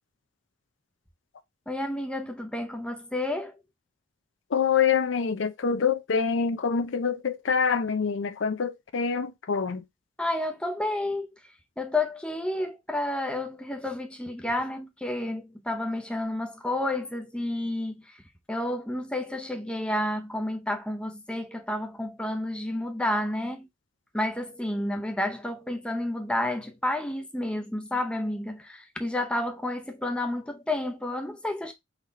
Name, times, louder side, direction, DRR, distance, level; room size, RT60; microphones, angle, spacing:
voice 1, 1.7-3.5 10.2-11.3 11.8-18.0 18.5-23.7 24.1-31.7, left 1 dB, 5° left, 0.7 m, -30 dB
voice 2, 4.5-9.8, left 6 dB, 70° left, 0.5 m, -26 dB
4.0 x 3.3 x 3.9 m
head